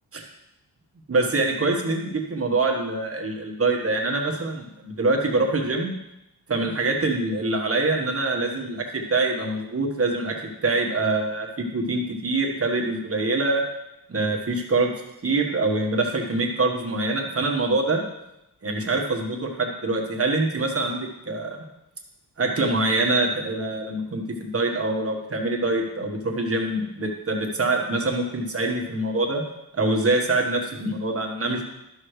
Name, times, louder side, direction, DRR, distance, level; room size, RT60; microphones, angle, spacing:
voice 1, 1.1-5.9 6.5-10.3 10.6-13.6 14.1-14.9 15.2-18.0 18.6-21.6 22.4-29.4 29.7-31.6, right 2 dB, 35° right, 1 dB, 1.4 m, -24 dB
12.5 x 6.5 x 3.2 m, 0.90 s
wide cardioid pair, 130°, 38 cm